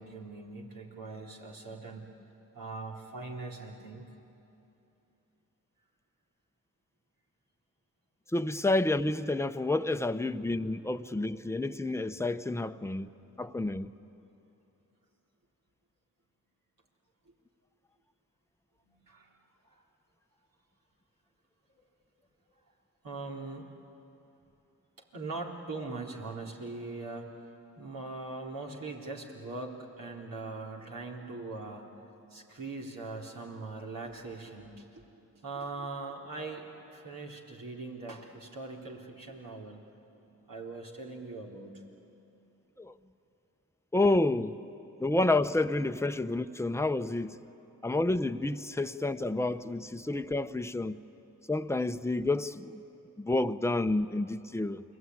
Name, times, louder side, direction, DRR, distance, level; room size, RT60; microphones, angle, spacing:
voice 1, 0.0-2.1 2.5-4.1 17.3-17.4 18.8-19.3 19.6-19.8 21.8-21.9 23.0-23.7 25.1-27.3 27.8-31.9 32.3-35.1 35.4-40.0 40.5-41.8, right 3 dB, 65° right, 3.9 m, -41 dB
voice 2, 8.3-13.1 13.4-13.9 42.8-42.9 43.9-44.6 45.0-47.4 47.8-51.0 51.5-52.8 53.2-54.8, left 2 dB, 5° left, 0.9 m, -29 dB
29.0 x 21.5 x 9.6 m
supercardioid pair, 40°, 36 cm